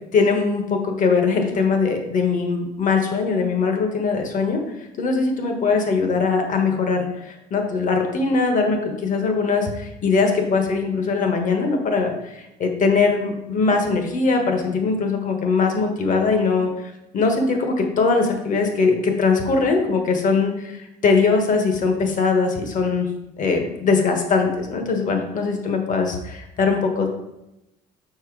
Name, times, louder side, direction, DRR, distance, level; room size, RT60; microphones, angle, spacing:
voice 1, 0.1-4.6 5.0-23.1 23.4-27.1, left 4 dB, 50° left, 4 dB, 1.4 m, -21 dB
6.6 x 4.6 x 4.8 m, 0.90 s
cardioid pair, 110°, 17 cm